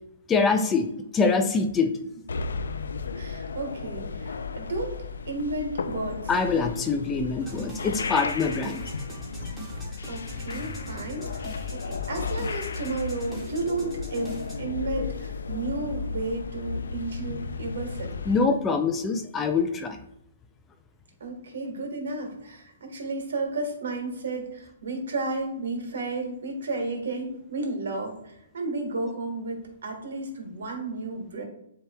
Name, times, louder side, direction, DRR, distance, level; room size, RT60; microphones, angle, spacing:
voice 1, 0.3-0.9 1.1-1.9 6.3-8.8 18.3-20.0, left 4 dB, 15° left, 7 dB, 0.4 m, -24 dB
sound 1, 2.3-18.5, left 4 dB, 80° left, 0.4 m, -34 dB
voice 2, 3.1-4.9 5.2-6.3 10.1-18.2 21.2-31.4, right 2 dB, 75° right, 3 dB, 1.6 m, -32 dB
sound 2, 7.4-14.6, left 1 dB, 10° right, 1.5 m, -40 dB
7.8 x 2.9 x 2.3 m, 0.82 s
hypercardioid pair, 145°, 0 cm